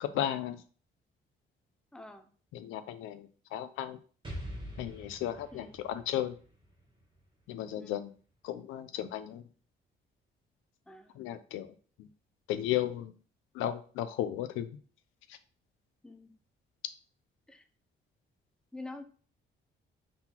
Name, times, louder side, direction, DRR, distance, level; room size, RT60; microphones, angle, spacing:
voice 1, 0.0-0.6 2.5-4.0 4.8-6.3 7.5-8.1 8.4-9.4 11.2-11.7 12.0-12.1 12.5-13.1 13.5-14.7, left 12 dB, 90° left, 11 dB, 0.4 m, -34 dB
voice 2, 1.9-2.2 5.5-5.7 7.8-8.0 10.9-11.2 16.0-16.3 17.5-17.6 18.7-19.0, left 2 dB, 5° left, 8 dB, 0.5 m, -46 dB
Explosion, 4.2-8.0, equal, 25° right, 1.4 m, -45 dB
3.9 x 3.8 x 2.9 m, 0.41 s
cardioid pair, 90°, 20 cm